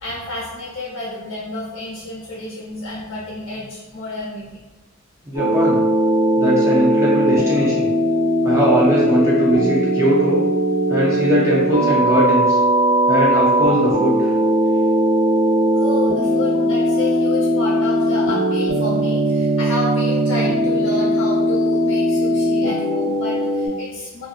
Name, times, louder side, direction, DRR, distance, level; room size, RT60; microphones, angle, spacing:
voice 1, 0.0-4.5 15.7-24.3, left 1 dB, 60° left, -5 dB, 1.1 m, -30 dB
voice 2, 5.3-5.8 6.4-7.9 8.4-10.4 10.9-12.6 13.1-14.3, equal, 15° right, -6 dB, 0.4 m, -20 dB
sound 1, 5.4-23.7, equal, 90° left, 0.6 m, -18 dB
2.6 x 2.5 x 2.4 m, 1.1 s
head